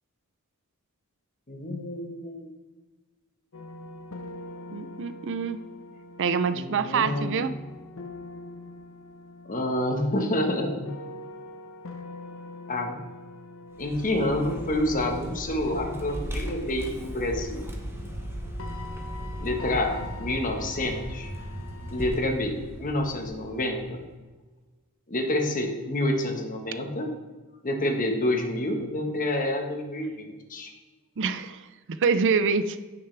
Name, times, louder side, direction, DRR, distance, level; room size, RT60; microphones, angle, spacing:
voice 1, 1.5-2.5 6.5-7.5 9.4-10.9 12.7-13.0 13.8-17.6 19.4-21.3 21.9-24.0 25.1-27.1 27.6-30.7, left 1 dB, 40° left, 3 dB, 1.4 m, -28 dB
sound 1, 3.5-22.2, left 2 dB, 65° left, 1.0 m, -43 dB
voice 2, 4.7-5.6 6.2-7.5 31.2-32.8, right 5 dB, 55° right, 11 dB, 0.5 m, -26 dB
Vehicle, 13.7-24.1, equal, 10° right, 1.1 m, -37 dB
16.0 x 6.6 x 3.4 m, 1.3 s
head